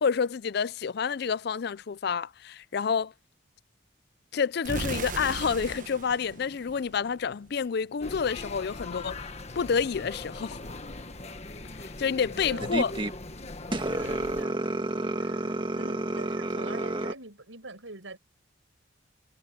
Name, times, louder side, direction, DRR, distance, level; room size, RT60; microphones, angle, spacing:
voice 1, 0.0-3.1 4.3-9.2 9.6-10.6 11.8-12.9, left 6 dB, 55° left, 0.4 m, -28 dB
sound 1, 4.6-7.5, right 3 dB, 45° right, 1.1 m, -37 dB
sound 2, 8.0-14.4, left 2 dB, 35° left, 1.5 m, -40 dB
voice 2, 12.3-12.7 13.8-14.7 15.2-18.2, right 2 dB, 90° right, 6.3 m, -45 dB
sound 3, 12.6-13.1 13.7-17.1, right 1 dB, 25° right, 1.5 m, -30 dB
head